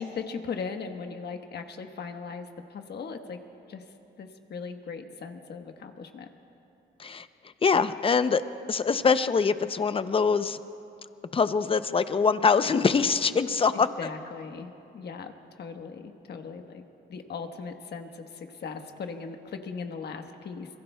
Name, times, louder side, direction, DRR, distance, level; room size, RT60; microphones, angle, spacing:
voice 1, 0.0-3.4 3.7-3.8 4.2-6.3 13.7-15.3 15.6-16.8 17.1-20.7, left 5 dB, 55° left, 5 dB, 1.3 m, -38 dB
voice 2, 7.6-8.4 8.7-10.6 11.3-13.9, left 5 dB, 30° left, 12 dB, 0.6 m, -23 dB
27.0 x 22.5 x 2.3 m, 2.8 s
cardioid pair, 90°, 20 cm